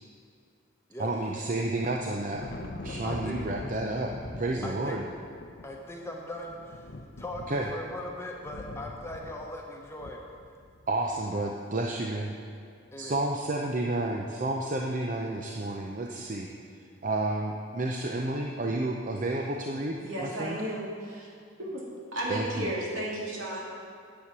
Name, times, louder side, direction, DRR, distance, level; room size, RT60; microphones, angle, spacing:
voice 1, 1.0-5.0 7.5-7.7 10.9-12.3 13.0-16.5 17.0-20.6 22.3-22.7, right 2 dB, 40° right, 0 dB, 0.6 m, -31 dB
Thunder, 1.8-11.2, left 2 dB, 50° left, 0.7 m, -43 dB
voice 2, 3.0-3.4 4.6-5.0 5.6-10.2 12.9-13.2, left 1 dB, 15° left, 0 dB, 1.0 m, -39 dB
voice 3, 20.0-21.3 21.6-21.8 22.1-23.7, right 1 dB, 75° right, -5 dB, 2.9 m, -33 dB
10.0 x 8.2 x 6.1 m, 2.3 s
head